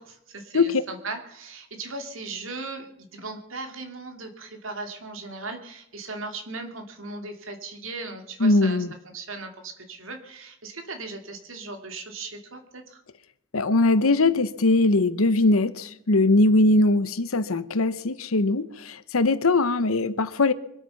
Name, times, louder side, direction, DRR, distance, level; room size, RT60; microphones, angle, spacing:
voice 1, 0.0-13.0, right 3 dB, 70° right, 2.5 m, -38 dB
voice 2, 8.4-8.9 13.5-20.5, left 2 dB, 85° left, 0.9 m, -21 dB
24.0 x 8.7 x 5.8 m
head